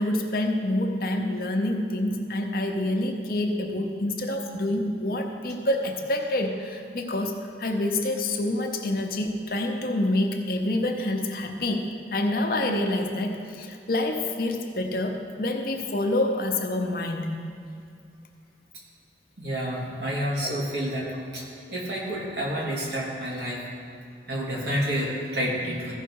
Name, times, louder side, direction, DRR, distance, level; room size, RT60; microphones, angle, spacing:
voice 1, 0.0-11.9 12.1-17.5 20.4-20.6, left 1 dB, 55° left, 3 dB, 0.9 m, -27 dB
voice 2, 19.4-23.6 24.3-25.9, equal, 70° right, -4 dB, 2.3 m, -29 dB
15.0 x 5.6 x 4.7 m, 2.4 s
head